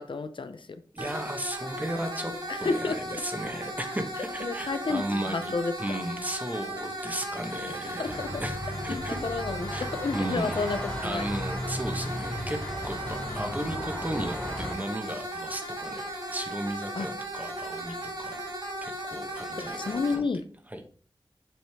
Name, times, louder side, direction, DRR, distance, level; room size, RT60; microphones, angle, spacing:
voice 1, 0.0-0.8 2.5-3.2 4.4-6.0 8.0-8.4 8.9-11.3 16.9-17.1 19.6-20.4, left 4 dB, 75° left, 0.6 m, -31 dB
voice 2, 0.9-2.3 2.6-5.5 5.8-9.2 9.7-10.6 11.0-12.6 12.8-18.4 18.8-20.2 20.7-20.8, right 1 dB, 20° right, 1.2 m, -35 dB
sound 1, 1.0-20.1, right 1 dB, 60° right, 3.7 m, -36 dB
sound 2, 8.0-14.7, left 1 dB, 15° left, 2.0 m, -36 dB
7.7 x 5.1 x 3.5 m
wide cardioid pair, 75°, 8 cm